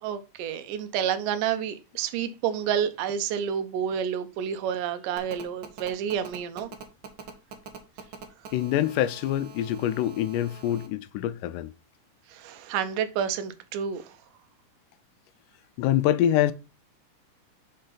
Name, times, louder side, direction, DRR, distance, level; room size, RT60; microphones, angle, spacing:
voice 1, 0.0-6.7 12.3-14.1, right 8 dB, 85° right, 2.4 m, -29 dB
Telephone, 5.2-10.9, right 6 dB, 70° right, 1.1 m, -44 dB
voice 2, 8.5-11.7 15.8-16.5, left 12 dB, 85° left, 2.2 m, -25 dB
6.4 x 5.6 x 3.9 m
omnidirectional pair, 3.7 m